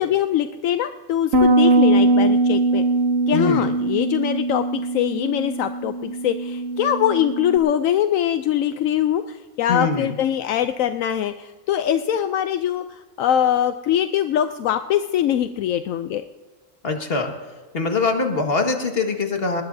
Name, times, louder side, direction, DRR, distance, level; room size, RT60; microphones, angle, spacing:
voice 1, 0.0-2.8 3.3-16.3, left 10 dB, 80° left, 9 dB, 1.0 m, -22 dB
Bass guitar, 1.3-7.6, right 2 dB, 55° right, 1.1 m, -21 dB
voice 2, 3.3-3.7 9.7-10.2 16.8-17.3 17.7-19.6, left 3 dB, 45° left, 3 dB, 1.9 m, -23 dB
20.5 x 20.0 x 2.7 m, 1.3 s
omnidirectional pair, 1.4 m